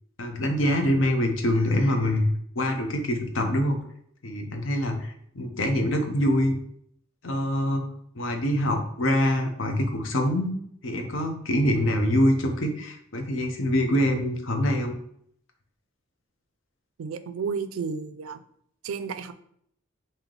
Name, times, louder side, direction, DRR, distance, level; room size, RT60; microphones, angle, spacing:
voice 1, 0.2-2.3 2.6-3.8 4.2-6.5 7.2-7.9 8.2-10.5 10.8-14.9, left 1 dB, 65° left, 4 dB, 0.6 m, -25 dB
voice 2, 17.0-18.4 18.8-19.3, right 5 dB, 85° right, 11 dB, 0.3 m, -32 dB
3.2 x 2.7 x 3.7 m, 0.68 s
head